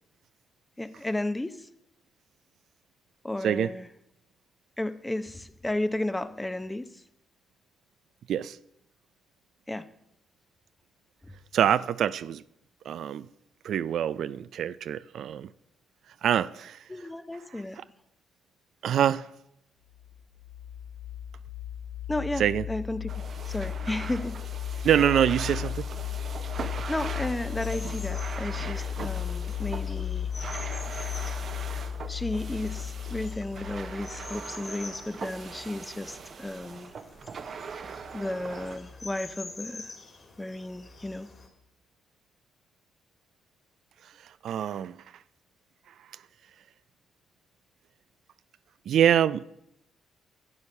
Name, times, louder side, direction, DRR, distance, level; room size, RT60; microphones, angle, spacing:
voice 1, 0.8-1.7 3.2-3.9 4.8-7.0 9.7-9.9 16.9-17.8 22.1-24.4 26.9-30.3 32.1-36.9 38.1-39.9 40.4-41.3, left 1 dB, 15° left, 0.7 m, -33 dB
voice 2, 11.5-12.4 12.8-13.3 13.6-15.5 16.2-16.8 17.5-17.8 18.8-19.3 22.4-22.6 24.8-25.9 44.0-45.2 45.9-46.2 48.9-49.4, right 10 dB, 70° right, 0.3 m, -26 dB
sound 1, 20.0-34.4, left 9 dB, 75° left, 1.3 m, -35 dB
sound 2, 23.1-38.8, right 6 dB, 55° right, 0.8 m, -41 dB
sound 3, 27.6-41.5, left 3 dB, 40° left, 2.9 m, -47 dB
11.0 x 8.7 x 5.4 m
cardioid pair, 75°, 0 cm